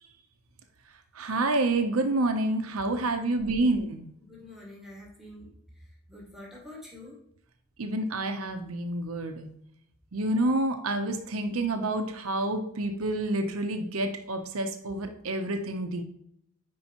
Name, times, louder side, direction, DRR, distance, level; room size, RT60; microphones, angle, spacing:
voice 1, 1.1-4.1 7.8-9.5 10.1-16.0, right 2 dB, 90° right, 5 dB, 0.8 m, -28 dB
voice 2, 4.3-5.5 6.1-7.2, left 1 dB, ahead, -3 dB, 1.9 m, -46 dB
9.6 x 4.7 x 3.0 m, 0.74 s
head